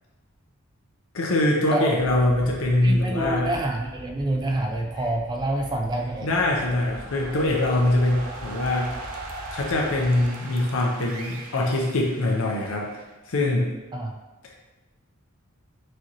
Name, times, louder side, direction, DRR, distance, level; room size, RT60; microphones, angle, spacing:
voice 1, 1.1-3.5 6.2-8.9 9.5-13.0 13.3-13.7, left 1 dB, 65° left, -2 dB, 0.6 m, -23 dB
sound 1, 2.0-10.3, equal, 65° right, 1.4 m, -42 dB
voice 2, 2.8-6.3 13.9-14.1, right 1 dB, 20° right, 1 dB, 0.3 m, -27 dB
sound 2, 6.3-13.2, right 2 dB, 90° right, 0.6 m, -40 dB
4.8 x 3.0 x 2.8 m, 1.1 s
head